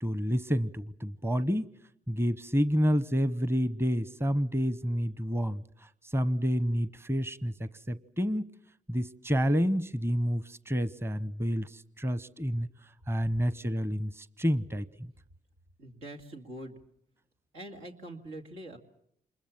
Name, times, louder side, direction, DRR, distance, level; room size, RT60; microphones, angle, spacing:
voice 1, 0.0-1.7 2.1-8.5 8.9-12.7 13.1-15.1, equal, 10° right, 16 dB, 0.9 m, -29 dB
voice 2, 15.8-16.8 17.5-18.8, right 1 dB, 85° right, 2 dB, 2.5 m, -44 dB
26.5 x 21.0 x 7.3 m, 0.73 s
supercardioid pair, 50°, 21 cm